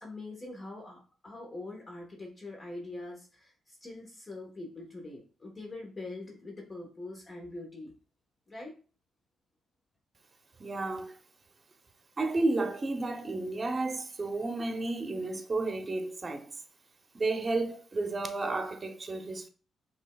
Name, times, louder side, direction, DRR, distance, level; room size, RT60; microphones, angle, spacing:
voice 1, 0.0-7.9 8.5-8.7, left 2 dB, 35° left, 1.2 m, -43 dB
voice 2, 10.6-11.1 12.2-16.5 17.1-19.5, right 2 dB, 35° right, 0.8 m, -32 dB
5.3 x 3.4 x 2.3 m
supercardioid pair, 65°, 0 cm